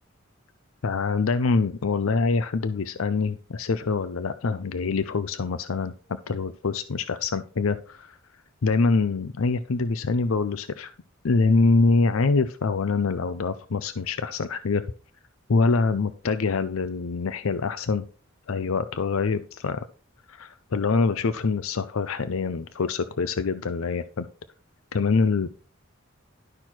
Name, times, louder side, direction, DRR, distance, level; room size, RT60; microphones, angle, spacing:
voice 1, 0.8-5.9 6.3-8.2 8.6-10.9 11.2-14.8 15.5-18.0 18.5-19.8 20.3-24.3 24.9-25.5, left 4 dB, 85° left, 12 dB, 0.6 m, -25 dB
12.0 x 6.0 x 4.5 m, 0.39 s
head